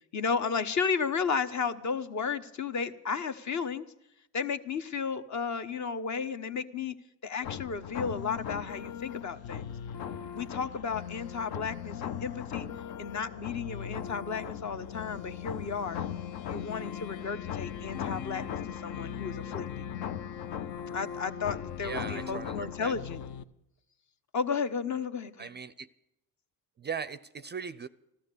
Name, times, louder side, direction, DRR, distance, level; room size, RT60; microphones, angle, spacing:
voice 1, 0.1-3.9 4.3-6.9 7.2-9.7 10.3-12.7 13.0-16.0 16.5-19.9 20.9-23.2 24.3-25.5, left 5 dB, 45° left, 1.1 m, -33 dB
sound 1, 7.4-23.4, left 9 dB, 65° left, 0.8 m, -38 dB
voice 2, 21.8-22.9 25.4-25.9 26.8-27.9, right 6 dB, 25° right, 0.4 m, -39 dB
14.0 x 13.0 x 6.8 m
supercardioid pair, 80°, 40 cm